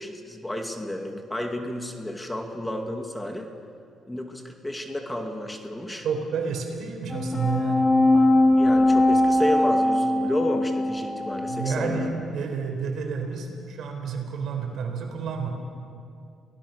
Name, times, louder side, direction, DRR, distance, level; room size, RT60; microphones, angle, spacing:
voice 1, 0.0-3.5 4.1-6.0 8.6-12.1, left 1 dB, 10° left, 4 dB, 2.3 m, -31 dB
voice 2, 6.0-7.9 11.5-15.5, right 5 dB, 70° right, 3 dB, 4.3 m, -30 dB
sound 1, 7.1-12.1, left 1 dB, 25° left, 2.2 m, -21 dB
28.0 x 18.0 x 6.8 m, 2.4 s
cardioid pair, 90°, 0 cm